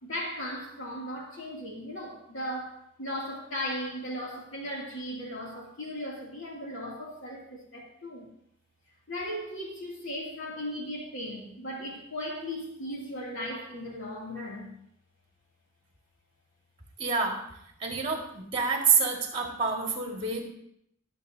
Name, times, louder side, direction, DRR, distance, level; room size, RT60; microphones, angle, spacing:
voice 1, 0.0-8.3 9.1-14.7, equal, 75° left, -3 dB, 2.8 m, -37 dB
voice 2, 17.0-17.4 17.8-20.4, right 5 dB, 25° right, 1 dB, 2.1 m, -27 dB
22.0 x 7.6 x 2.8 m, 0.73 s
head